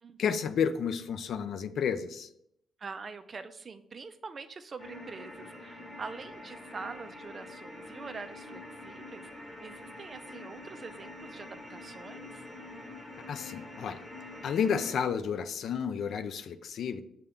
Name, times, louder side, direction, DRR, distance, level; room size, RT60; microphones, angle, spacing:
voice 1, 0.2-2.3 13.3-14.0 14.4-17.0, left 7 dB, 65° left, 10 dB, 0.3 m, -31 dB
voice 2, 2.8-9.3 9.6-12.4, right 4 dB, 40° right, 11 dB, 0.3 m, -44 dB
sound 1, 4.8-14.9, left 2 dB, 15° left, 1.1 m, -46 dB
6.5 x 2.2 x 3.5 m, 0.76 s
cardioid pair, 90°, 0 cm